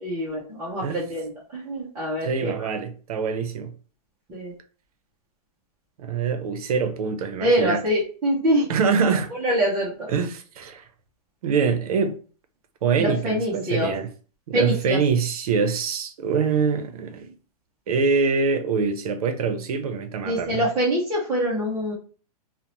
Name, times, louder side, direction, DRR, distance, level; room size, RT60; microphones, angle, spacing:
voice 1, 0.0-2.7 4.3-4.5 7.4-8.7 9.4-10.1 13.0-13.9 14.5-15.0 20.2-21.9, equal, 10° right, 0.3 m, -24 dB
voice 2, 2.2-3.7 6.0-7.8 8.7-9.3 10.1-10.8 11.4-12.2 12.8-14.1 14.5-17.3 17.9-20.6, right 5 dB, 65° right, 0.5 m, -24 dB
2.9 x 2.0 x 2.5 m
hypercardioid pair, 170°, 21 cm